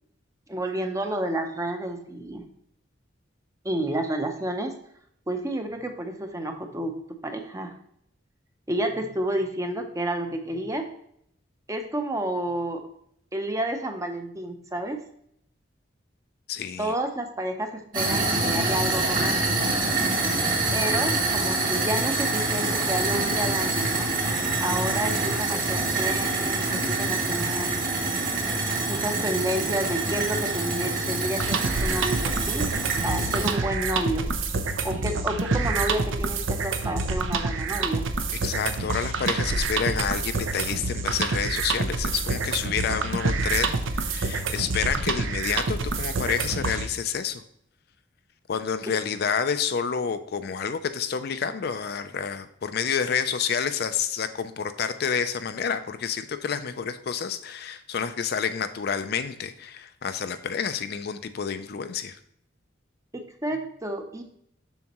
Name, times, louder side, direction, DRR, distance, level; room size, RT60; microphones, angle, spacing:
voice 1, 0.5-2.4 3.6-4.7 5.3-7.8 8.7-10.9 11.7-12.9 13.3-15.0 16.8-19.7 20.7-24.1 24.6-27.7 28.9-32.6 33.0-34.3 34.8-38.1 63.1-64.2, right 1 dB, 15° right, 5 dB, 0.7 m, -30 dB
voice 2, 16.5-16.9 38.4-47.4 48.5-62.2, left 7 dB, 55° left, 10 dB, 0.4 m, -29 dB
sound 1, 17.9-33.5, right 3 dB, 45° right, 2.1 m, -26 dB
sound 2, 31.4-46.9, right 3 dB, 90° right, 0.7 m, -27 dB
7.1 x 6.3 x 3.0 m, 0.69 s
head